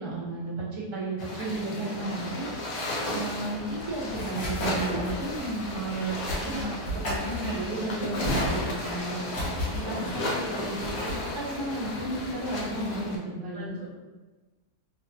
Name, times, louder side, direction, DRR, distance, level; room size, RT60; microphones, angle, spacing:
voice 1, 0.0-2.5 3.1-9.2 9.7-13.6, right 2 dB, 40° right, -8 dB, 0.4 m, -33 dB
sound 1, 1.2-13.2, left 1 dB, 65° left, 1.0 m, -34 dB
sound 2, 3.5-12.8, left 1 dB, 45° left, 1.2 m, -35 dB
voice 2, 6.4-6.7 9.9-10.1 10.5-10.6 13.5-14.0, equal, 5° right, -12 dB, 1.1 m, -39 dB
2.8 x 2.4 x 2.8 m, 1.2 s
omnidirectional pair, 1.8 m